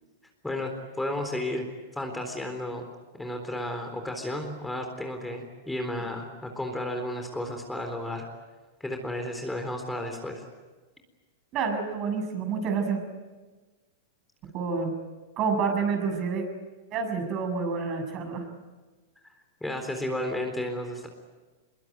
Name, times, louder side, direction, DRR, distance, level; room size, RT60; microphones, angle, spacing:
voice 1, 0.4-1.6 1.9-2.9 3.2-8.3 8.8-10.5 19.6-21.1, left 1 dB, 5° left, 4 dB, 3.9 m, -33 dB
voice 2, 11.5-13.0 14.4-15.0 15.4-16.4 16.9-18.5, right 5 dB, 40° right, 5 dB, 7.1 m, -28 dB
24.0 x 23.0 x 9.5 m, 1.3 s
hypercardioid pair, 105°, 0 cm